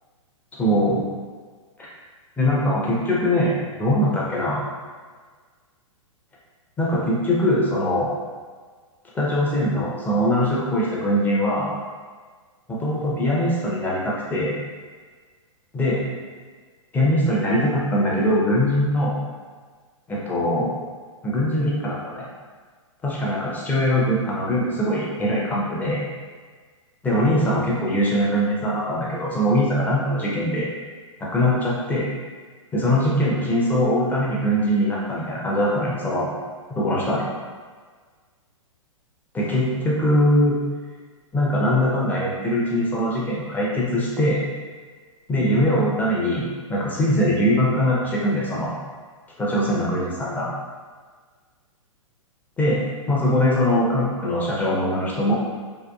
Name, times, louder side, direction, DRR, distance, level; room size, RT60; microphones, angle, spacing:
voice 1, 0.6-1.0 1.8-1.9 2.4-4.6 6.8-8.1 9.1-11.7 12.7-14.6 15.7-16.0 16.9-19.2 20.1-20.8 21.2-22.2 23.0-26.0 27.0-30.7 31.2-32.1 32.7-36.3 36.7-37.3 39.3-40.6 41.3-44.4 45.3-46.4 46.7-48.7 49.4-50.5 52.6-55.3, equal, 10° left, -6 dB, 0.4 m, -22 dB
2.7 x 2.1 x 2.3 m, 1.5 s
figure-of-eight pair, 110°, 17 cm